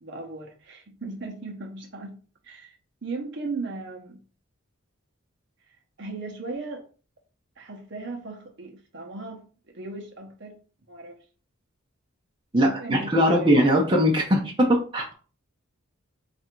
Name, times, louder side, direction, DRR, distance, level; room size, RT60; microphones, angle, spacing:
voice 1, 0.0-2.2 2.4-4.2 6.0-6.9 7.6-9.5 9.7-10.6 10.9-11.2 12.6-13.5 14.4-14.5, right 3 dB, 55° right, 0.8 m, -37 dB
voice 2, 12.5-15.1, equal, 25° right, 0.7 m, -21 dB
3.4 x 2.6 x 4.4 m
head